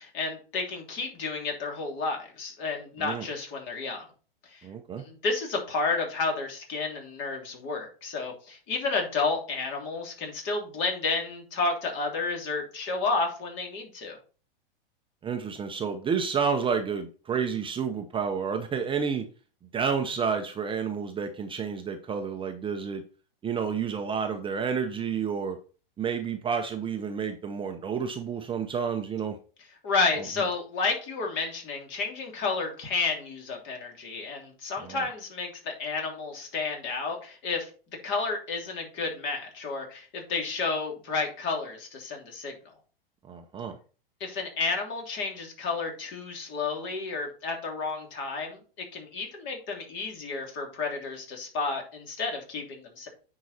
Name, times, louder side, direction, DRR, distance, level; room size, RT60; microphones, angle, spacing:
voice 1, 0.0-4.1 4.5-4.7 5.0-14.2 29.8-37.7 38.0-42.5 44.2-53.1, left 4 dB, 40° left, 2 dB, 3.1 m, -31 dB
voice 2, 4.6-5.0 15.2-19.3 19.7-23.0 23.4-25.6 26.0-29.4 34.8-35.0 43.3-43.8, right 6 dB, 15° right, 5 dB, 0.8 m, -30 dB
9.3 x 4.8 x 4.2 m, 0.38 s
hypercardioid pair, 120°, 29 cm